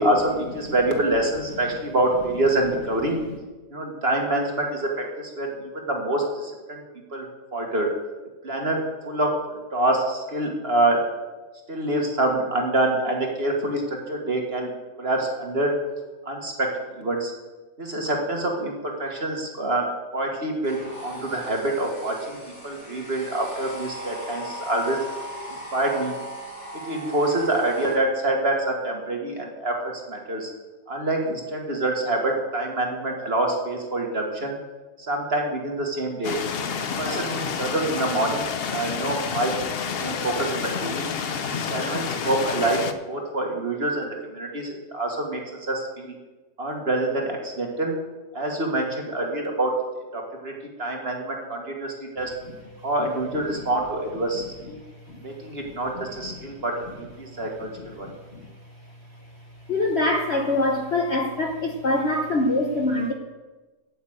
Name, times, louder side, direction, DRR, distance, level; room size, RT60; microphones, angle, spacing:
voice 1, 0.0-3.2 3.7-6.8 7.1-7.9 8.4-11.0 11.7-14.7 15.0-15.7 16.3-16.7 17.0-17.3 17.8-19.9 20.1-22.4 22.6-25.0 25.7-26.2 26.8-30.5 30.9-34.6 35.0-36.4 37.0-39.5 39.8-41.1 41.5-42.8 43.1-46.1 46.6-47.9 48.3-49.7 50.1-50.5 50.8-52.3 52.8-54.8 55.2-58.1, right 2 dB, 35° right, 1 dB, 1.8 m, -26 dB
sound 1, 20.6-28.0, right 1 dB, 65° left, 5.0 m, -38 dB
sound 2, 36.2-42.9, left 6 dB, 85° left, 0.5 m, -29 dB
voice 2, 59.7-63.1, left 2 dB, 45° left, 2 dB, 0.9 m, -23 dB
8.7 x 8.3 x 7.9 m, 1.2 s
omnidirectional pair, 1.9 m